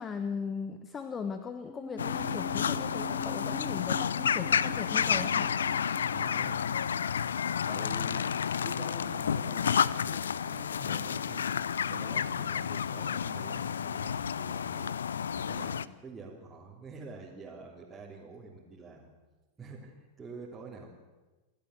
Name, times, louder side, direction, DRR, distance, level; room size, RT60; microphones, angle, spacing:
voice 1, 0.0-5.5, left 6 dB, 20° left, 8 dB, 1.3 m, -38 dB
sound 1, 1.7-8.2 8.5-8.6, equal, 5° left, 0.5 m, -46 dB
sound 2, 2.0-15.9, left 7 dB, 70° left, 0.6 m, -31 dB
voice 2, 6.1-6.7 7.7-8.3 8.6-14.9 15.3-19.1 19.6-21.0, right 3 dB, 15° right, -5 dB, 3.4 m, -47 dB
27.5 x 12.0 x 8.0 m, 1.2 s
figure-of-eight pair, 95°, 0 cm